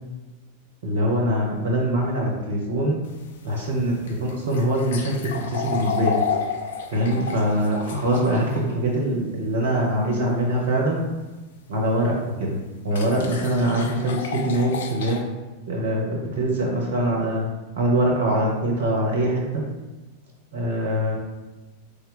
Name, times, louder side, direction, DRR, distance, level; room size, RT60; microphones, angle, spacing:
voice 1, 0.8-3.0 3.4-6.2 6.9-11.0 11.7-12.6 12.8-15.2 15.7-17.4 17.8-19.6 20.5-21.1, right 1 dB, 55° right, -1 dB, 0.6 m, -23 dB
sound 1, 3.0-8.6 11.7-11.8 12.9-15.2, left 6 dB, 60° left, 0.3 m, -31 dB
3.2 x 2.1 x 3.6 m, 1.2 s
figure-of-eight pair, 90°, 0 cm